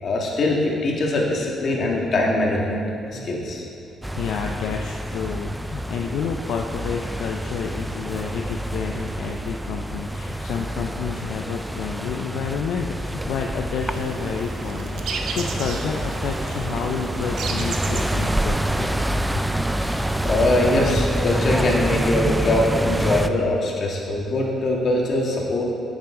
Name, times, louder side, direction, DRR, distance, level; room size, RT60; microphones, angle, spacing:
voice 1, 0.0-2.8 3.1-3.6 19.9-25.6, left 1 dB, 55° left, -2 dB, 1.7 m, -22 dB
sound 1, 4.0-23.3, right 1 dB, 5° right, 0.4 m, -27 dB
voice 2, 4.2-19.2, left 6 dB, 80° left, 2 dB, 0.4 m, -30 dB
sound 2, 13.8-19.0, right 5 dB, 75° right, 0.7 m, -34 dB
9.2 x 7.4 x 3.7 m, 2.7 s
cardioid pair, 90°, 0 cm